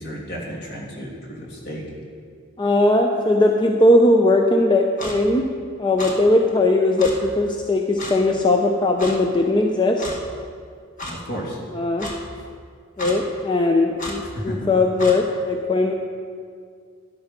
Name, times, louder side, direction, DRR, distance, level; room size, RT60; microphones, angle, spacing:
voice 1, 0.0-1.8 11.1-11.6 14.2-14.7, equal, 55° left, -3 dB, 3.0 m, -32 dB
voice 2, 2.6-5.5 5.8-10.1 11.7-12.1 13.0-15.9, left 2 dB, 25° left, 2 dB, 0.6 m, -19 dB
Clock, 5.0-5.2 6.0-6.1 7.0-7.1 8.0-8.2 9.0-9.2 10.0-10.2 11.0-11.1 12.0-12.2 13.0-13.2 14.0-14.2 15.0-15.2, left 1 dB, 40° left, 1.7 m, -31 dB
12.5 x 11.5 x 5.4 m, 2.1 s
head